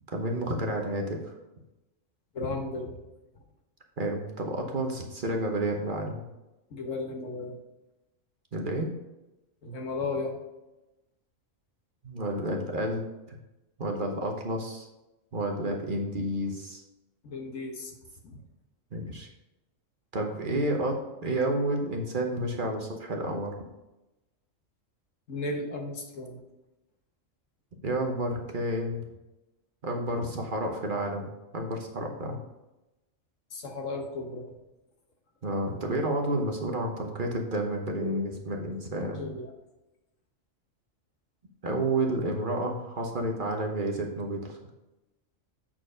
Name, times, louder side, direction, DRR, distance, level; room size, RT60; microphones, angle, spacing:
voice 1, 0.1-1.3 4.0-6.2 8.5-8.9 12.0-13.4 13.8-14.9 15.3-16.8 18.9-19.3 20.1-23.6 27.8-29.0 29.8-32.4 35.4-39.3 41.6-44.6, right 1 dB, 45° right, 2 dB, 1.0 m, -30 dB
voice 2, 2.3-3.0 6.7-7.6 9.6-10.3 17.2-17.9 18.2-18.4 25.3-26.4 33.5-34.5 38.9-39.5, left 3 dB, 70° left, 3 dB, 1.4 m, -35 dB
7.7 x 4.4 x 4.9 m, 0.99 s
omnidirectional pair, 1.4 m